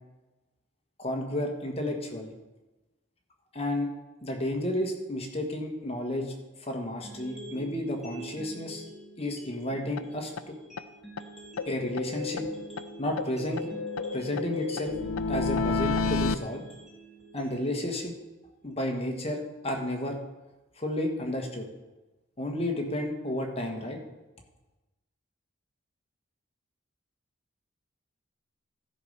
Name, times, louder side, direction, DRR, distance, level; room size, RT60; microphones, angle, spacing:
voice 1, 1.0-2.4 3.5-3.9 4.2-6.3 6.6-8.8 9.2-10.5 11.6-12.4 13.0-13.7 14.1-15.0 15.3-16.6 17.3-18.1 18.6-20.2 20.8-21.7 22.4-24.0, left 1 dB, 30° left, 2 dB, 1.3 m, -32 dB
sound 1, 7.0-19.1, right 2 dB, ahead, 2.0 m, -47 dB
sound 2, 10.0-10.1 10.4-10.5 10.8-10.9 11.2-11.3 11.6-12.9 13.2-16.4, left 4 dB, 85° left, 0.5 m, -31 dB
13.0 x 5.4 x 6.5 m, 1.1 s
head